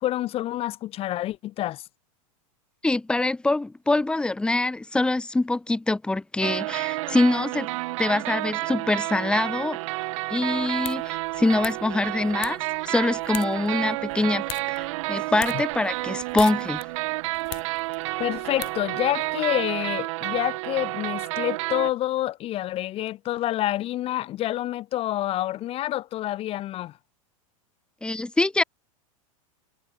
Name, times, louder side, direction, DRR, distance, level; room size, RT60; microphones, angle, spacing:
voice 1, 0.0-1.8 15.5-15.6 18.2-26.9, left 14 dB, 35° left, 0.9 m, -28 dB
voice 2, 2.8-7.7 8.0-9.8 10.3-16.8 28.0-28.6, left 2 dB, 5° left, 0.7 m, -24 dB
sound 1, 6.4-21.9, right 21 dB, 60° right, 2.4 m, -30 dB
sound 2, 10.5-19.4, left 36 dB, 50° left, 1.3 m, -42 dB
hypercardioid pair, 125°, 18 cm